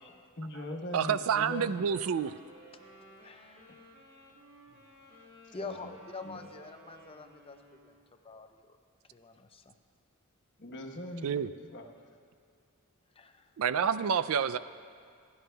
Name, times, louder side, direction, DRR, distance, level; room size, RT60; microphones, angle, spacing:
voice 1, 0.4-1.8 5.4-6.0 6.2-6.5 10.6-11.8, left 1 dB, 55° left, 2 dB, 1.2 m, -41 dB
voice 2, 0.9-2.4 11.2-11.5 13.6-14.6, right 7 dB, 70° right, 15 dB, 0.4 m, -28 dB
Wind instrument woodwind instrument, 1.6-8.1, right 1 dB, 50° right, 2.1 m, -56 dB
voice 3, 3.2-3.8 4.7-4.8 5.1-8.0 8.2-8.8 9.1-9.7 13.2-13.5, left 3 dB, 25° left, 7 dB, 0.6 m, -46 dB
27.5 x 11.0 x 2.3 m, 2.4 s
head